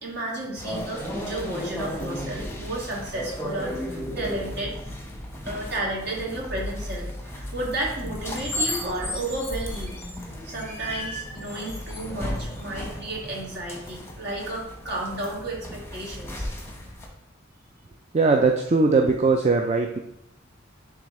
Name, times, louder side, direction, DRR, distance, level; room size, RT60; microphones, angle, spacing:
voice 1, 0.0-4.8 5.4-10.0 10.4-16.5, right 2 dB, 55° right, -3 dB, 2.1 m, -32 dB
sound 1, 0.6-17.1, left 1 dB, 15° left, 1.0 m, -34 dB
voice 2, 18.1-20.0, right 3 dB, 35° right, 3 dB, 0.4 m, -20 dB
10.5 x 3.5 x 3.1 m, 0.81 s
head